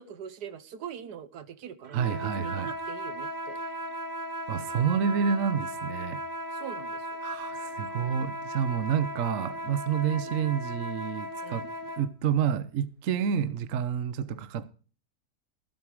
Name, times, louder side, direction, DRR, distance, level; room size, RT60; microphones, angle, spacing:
voice 1, 0.0-3.6 6.5-7.1 10.1-10.3 11.4-11.7, right 8 dB, 75° right, 1.5 m, -42 dB
sound 1, 1.9-12.1, equal, 30° right, 1.2 m, -36 dB
voice 2, 1.9-2.7 4.5-6.2 7.2-11.7 12.0-14.7, right 8 dB, 60° right, 1.1 m, -29 dB
15.0 x 8.9 x 4.9 m
omnidirectional pair, 1.8 m